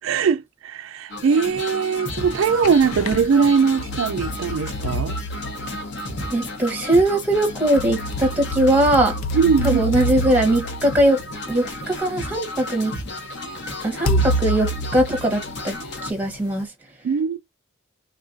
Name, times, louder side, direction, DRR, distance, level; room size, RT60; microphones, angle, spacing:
voice 1, 0.0-5.2 9.3-9.8 17.0-17.4, right 6 dB, 65° right, 0.3 m, -20 dB
sound 1, 1.1-16.1, left 1 dB, 55° left, 0.9 m, -33 dB
sound 2, 2.3-3.3 3.8-6.2 7.3-11.8 12.6-12.7 14.1-16.0, equal, 80° left, 0.4 m, -28 dB
voice 2, 6.3-9.1 9.6-11.2 11.5-12.9 13.8-15.7 16.0-16.7, right 1 dB, 10° right, 0.9 m, -20 dB
3.5 x 2.4 x 2.5 m
head